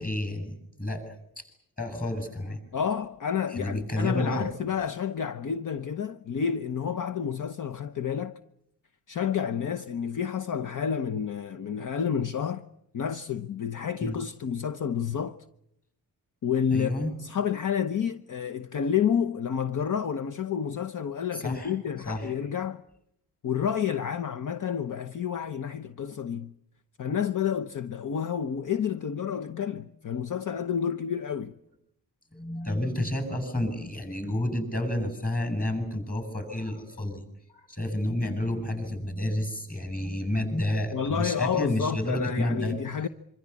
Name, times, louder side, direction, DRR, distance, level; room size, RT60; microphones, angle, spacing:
voice 1, 0.0-1.4 1.8-2.6 3.5-4.5 14.0-14.1 16.7-17.1 21.3-21.7 22.1-22.5 32.3-37.2 37.5-42.7, left 1 dB, 25° left, 7.9 m, -30 dB
voice 2, 2.7-8.4 9.1-12.7 12.9-15.4 16.4-22.8 23.4-26.5 27.0-31.5 40.9-43.1, left 8 dB, 55° left, 1.0 m, -30 dB
25.5 x 25.5 x 8.5 m
wide cardioid pair, 120°, 38 cm